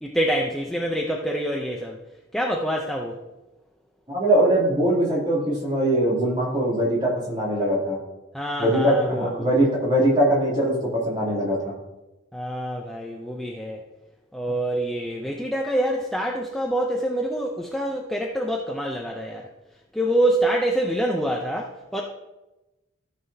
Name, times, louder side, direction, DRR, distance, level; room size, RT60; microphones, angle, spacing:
voice 1, 0.0-2.0 2.3-3.2 8.3-9.5 12.3-13.8 14.3-19.5 19.9-22.0, right 1 dB, ahead, -1 dB, 0.5 m, -26 dB
voice 2, 4.1-8.0 8.6-11.7, right 1 dB, 25° right, -6 dB, 2.9 m, -21 dB
14.0 x 5.8 x 2.8 m, 1.0 s
head